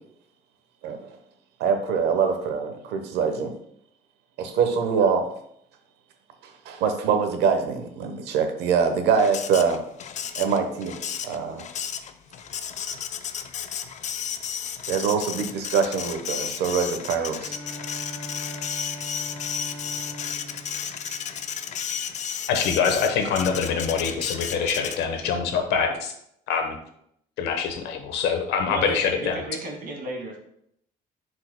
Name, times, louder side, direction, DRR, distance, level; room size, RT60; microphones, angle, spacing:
voice 1, 1.6-3.5 4.4-5.3 6.6-9.8 10.4-10.9 11.2-11.6 14.9-17.6, right 6 dB, 85° right, 6 dB, 1.0 m, -24 dB
Printer, 9.1-25.3, left 8 dB, 45° left, 0.5 m, -33 dB
Bowed string instrument, 17.4-22.1, equal, 15° left, 1.4 m, -41 dB
voice 2, 22.5-26.1 26.5-26.8 27.4-29.4, left 6 dB, 85° left, 5 dB, 1.1 m, -24 dB
voice 3, 28.7-30.4, right 1 dB, 55° right, 0 dB, 2.1 m, -33 dB
10.0 x 4.9 x 2.2 m, 0.72 s
cardioid pair, 110°, 17 cm